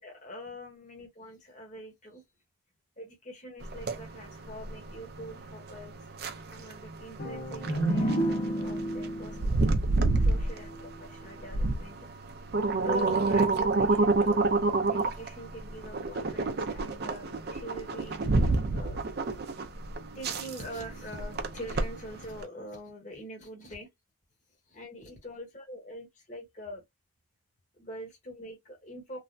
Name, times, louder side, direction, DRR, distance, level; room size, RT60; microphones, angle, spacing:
voice 1, 0.0-2.2 3.0-5.9 6.5-9.6 10.2-12.1 12.8-18.2 18.7-19.0 20.1-23.9 24.8-26.8 27.8-29.2, equal, 35° left, 1.0 m, -44 dB
sound 1, 3.6-22.4, right 3 dB, 50° right, 0.5 m, -29 dB
sound 2, 7.2-10.9, right 1 dB, 60° left, 1.2 m, -31 dB
3.2 x 2.1 x 2.5 m
head